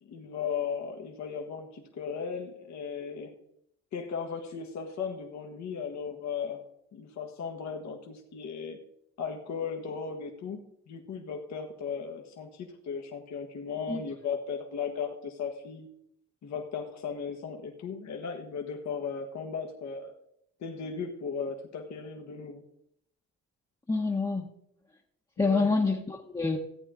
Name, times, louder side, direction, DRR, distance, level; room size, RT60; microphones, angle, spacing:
voice 1, 0.0-3.3 3.9-6.6 6.9-8.8 9.2-15.9 16.4-20.1 20.6-22.6 25.4-25.8, left 6 dB, 65° left, 2 dB, 1.5 m, -36 dB
voice 2, 23.9-24.5 25.4-26.6, left 3 dB, 15° left, -2 dB, 1.1 m, -27 dB
15.0 x 8.7 x 3.8 m, 0.73 s
cardioid pair, 90°, 30 cm